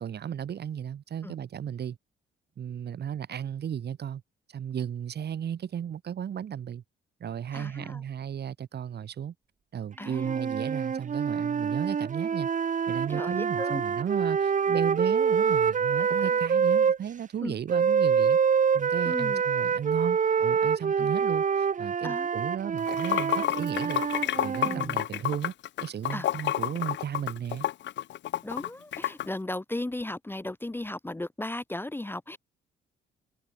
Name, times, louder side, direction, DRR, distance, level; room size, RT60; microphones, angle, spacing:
voice 1, 0.0-2.0 2.6-4.2 4.5-6.8 7.2-9.3 9.7-12.5 12.9-18.4 18.7-24.0 24.4-25.5 25.8-27.7, right 9 dB, 55° right, 2.2 m, -35 dB
voice 2, 7.5-8.0 10.0-10.5 13.1-13.8 16.0-16.3 17.4-17.5 19.0-19.4 21.0-21.1 22.0-22.3 24.6-25.0 26.1-26.3 28.4-32.4, left 1 dB, 10° left, 1.2 m, -36 dB
sound 1, 10.0-17.0 17.7-24.9, right 6 dB, 40° right, 1.5 m, -26 dB
Water / Sink (filling or washing), 22.8-29.3, left 12 dB, 65° left, 0.7 m, -30 dB
cardioid pair, 90°, 20 cm